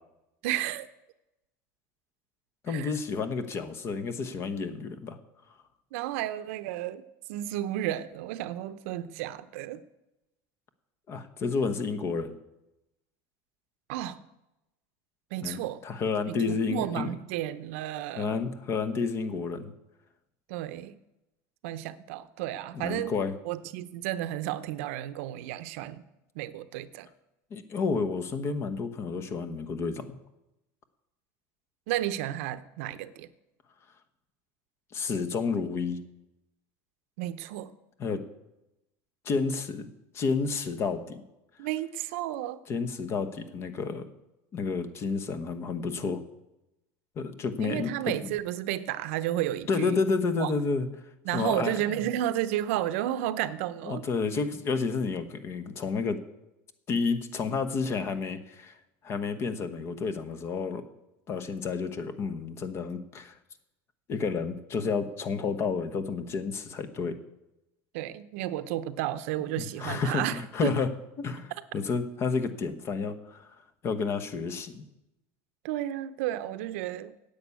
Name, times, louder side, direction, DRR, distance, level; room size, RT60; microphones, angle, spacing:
voice 1, 0.4-0.9 2.7-2.9 5.9-7.0 7.3-9.8 13.9-14.2 15.3-15.8 16.3-18.4 20.5-21.0 21.6-23.2 23.4-26.0 26.3-27.1 31.9-33.3 37.2-37.7 41.6-42.6 47.6-50.0 50.4-50.5 51.2-54.0 67.9-70.8 75.6-77.2, right 13 dB, 80° right, 12 dB, 0.7 m, -32 dB
voice 2, 2.6-5.2 11.1-12.3 15.4-17.1 18.1-19.7 22.7-23.3 27.5-30.2 34.9-36.0 38.0-38.2 39.2-39.9 40.1-41.2 42.7-44.0 44.5-46.2 47.2-48.3 49.7-50.9 51.3-52.0 53.8-56.2 56.9-58.7 59.0-60.8 61.3-63.3 64.1-67.2 69.6-70.9 71.2-73.5 73.8-74.8, left 4 dB, 35° left, 11 dB, 1.1 m, -30 dB
10.5 x 8.4 x 8.4 m, 0.94 s
supercardioid pair, 140°, 7 cm